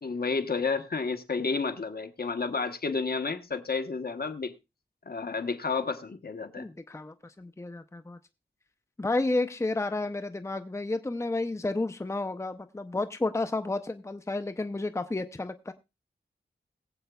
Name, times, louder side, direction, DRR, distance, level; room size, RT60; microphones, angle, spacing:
voice 1, 0.0-4.5 5.1-6.7, left 4 dB, 60° left, 1.1 m, -31 dB
voice 2, 6.6-8.2 9.0-15.7, left 2 dB, 15° left, 0.6 m, -31 dB
21.5 x 7.9 x 2.3 m
wide cardioid pair, 75°, 18 cm